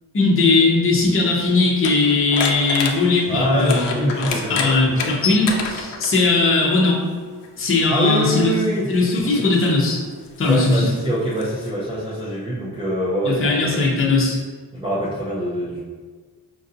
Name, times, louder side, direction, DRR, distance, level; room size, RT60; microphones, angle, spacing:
voice 1, 0.1-7.0 7.6-8.5 8.9-10.0 10.4-10.9 13.2-14.4, left 3 dB, 30° left, -4 dB, 0.7 m, -19 dB
sound 1, 0.9-6.3 7.4-7.6 8.3-11.7, left 5 dB, 85° left, 0.6 m, -29 dB
voice 2, 3.3-5.0 7.9-8.9 9.2-9.5 10.5-13.9 14.7-15.8, right 1 dB, 15° right, -9 dB, 0.4 m, -24 dB
5.3 x 2.6 x 2.6 m, 1.5 s
wide cardioid pair, 175°, 42 cm